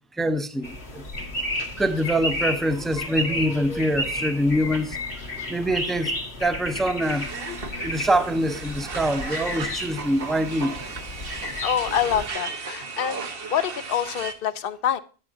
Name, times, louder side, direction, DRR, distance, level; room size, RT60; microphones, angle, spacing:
voice 1, 0.2-0.7 0.9-1.0 1.8-5.0 5.5-6.1 6.4-7.3 7.8-10.8, equal, ahead, 0.6 m, -24 dB
sound 1, 0.6-12.3, left 1 dB, 85° left, 2.0 m, -32 dB
sound 2, 7.0-14.3, right 4 dB, 65° right, 1.3 m, -35 dB
voice 2, 11.6-13.2 13.5-15.0, left 9 dB, 65° left, 0.9 m, -26 dB
9.9 x 9.8 x 2.6 m
omnidirectional pair, 1.1 m